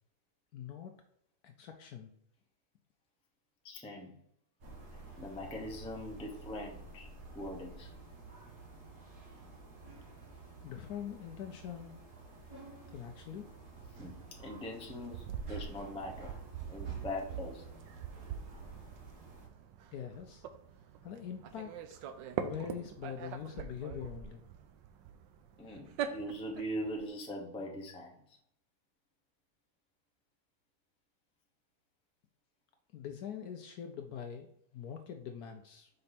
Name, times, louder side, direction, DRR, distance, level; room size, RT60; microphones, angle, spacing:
voice 1, 0.5-0.9 1.4-2.1 10.6-12.1 12.9-13.5 19.9-20.4 21.0-21.7 22.4-24.5 32.9-35.9, left 8 dB, 70° left, 5 dB, 1.0 m, -43 dB
voice 2, 3.6-4.2 5.2-7.1 7.3-7.9 14.0-16.3 16.7-17.7 25.6-28.2, equal, 5° left, 0 dB, 0.5 m, -41 dB
sound 1, 4.6-19.5, right 3 dB, 55° right, 1.9 m, -52 dB
sound 2, 14.4-27.0, right 8 dB, 80° right, 1.3 m, -43 dB
5.4 x 4.3 x 4.1 m, 0.71 s
omnidirectional pair, 2.0 m